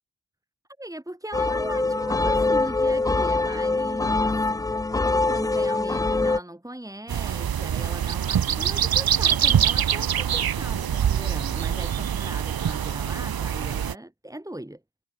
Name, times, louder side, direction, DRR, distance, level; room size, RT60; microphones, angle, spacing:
voice 1, 0.8-4.3 5.3-14.8, right 1 dB, 5° right, 7.5 m, -38 dB
sound 1, 1.3-6.4, left 3 dB, 10° left, 0.4 m, -23 dB
sound 2, 7.1-13.9, right 9 dB, 50° right, 1.5 m, -24 dB
cardioid pair, 75°, 45 cm